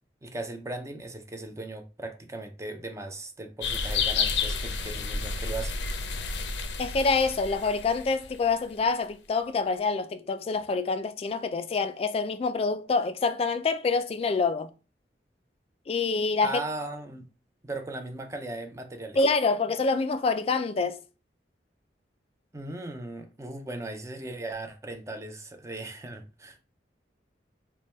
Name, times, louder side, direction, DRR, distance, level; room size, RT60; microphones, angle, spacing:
voice 1, 0.2-5.8 16.4-17.2 17.6-19.2 22.5-26.6, right 2 dB, 15° right, 0.5 m, -38 dB
sound 1, 3.6-8.6, left 5 dB, 85° left, 0.5 m, -31 dB
voice 2, 6.8-14.7 15.9-16.6 19.2-21.0, left 4 dB, 35° left, 0.3 m, -26 dB
3.2 x 2.2 x 4.2 m
head